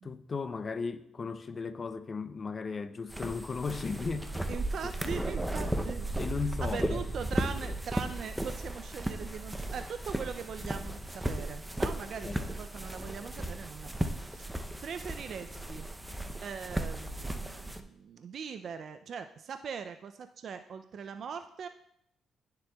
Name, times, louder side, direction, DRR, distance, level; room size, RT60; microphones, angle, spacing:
voice 1, 0.0-4.5 5.0-5.2 6.2-7.1 12.2-12.5, left 4 dB, 35° left, 0.5 m, -36 dB
sound 1, 3.1-17.8, right 1 dB, 10° right, 0.6 m, -35 dB
voice 2, 4.5-6.1 6.6-14.5 14.8-15.9 16.4-21.7, right 6 dB, 60° right, 0.3 m, -41 dB
11.0 x 6.7 x 2.3 m
cardioid pair, 90°, 0 cm